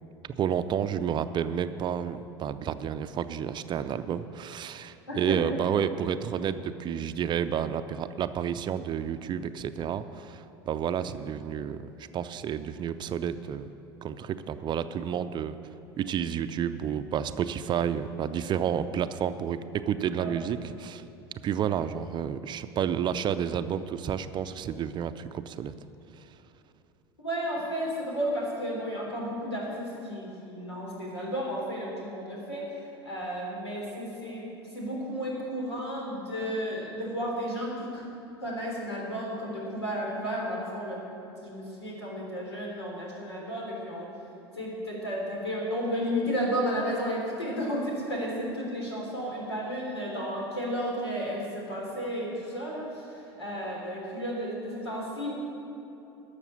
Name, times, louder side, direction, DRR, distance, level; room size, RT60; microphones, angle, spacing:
voice 1, 0.2-13.7 14.0-15.6 16.0-21.0 21.4-25.7, right 8 dB, 35° right, 11 dB, 0.5 m, -30 dB
voice 2, 5.1-5.6 20.2-20.4 27.2-32.8 33.1-38.0 38.4-41.0 41.4-44.1 44.5-55.3, equal, 85° left, -3 dB, 3.5 m, -33 dB
12.5 x 6.6 x 8.5 m, 2.9 s
figure-of-eight pair, 75°, 14 cm